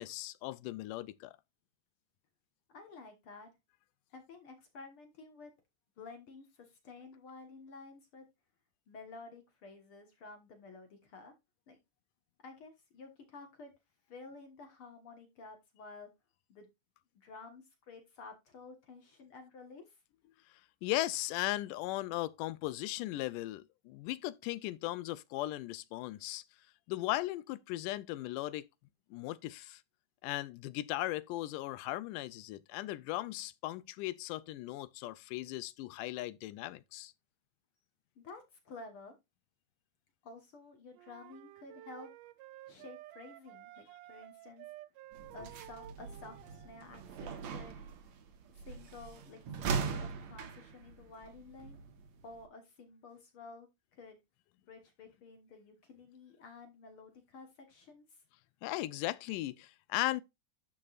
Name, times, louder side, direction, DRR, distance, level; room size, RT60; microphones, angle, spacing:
voice 1, 0.0-1.4 20.8-26.4 26.9-28.7 29.1-29.8 30.2-37.1 58.6-60.2, left 16 dB, 85° left, 2.2 m, -37 dB
voice 2, 2.7-3.5 4.1-5.5 6.0-8.2 8.9-11.3 11.7-11.8 12.4-13.7 14.1-16.1 16.5-16.7 17.1-20.0 38.2-39.1 40.2-42.1 42.7-44.7 45.3-47.8 48.7-51.8 52.2-53.7 54.0-54.2 54.7-58.2, left 3 dB, 50° left, 1.9 m, -52 dB
sound 1, 40.9-46.8, right 15 dB, 85° right, 2.2 m, -53 dB
sound 2, 45.1-52.4, right 5 dB, 65° right, 2.4 m, -41 dB
12.0 x 5.4 x 2.4 m
omnidirectional pair, 3.7 m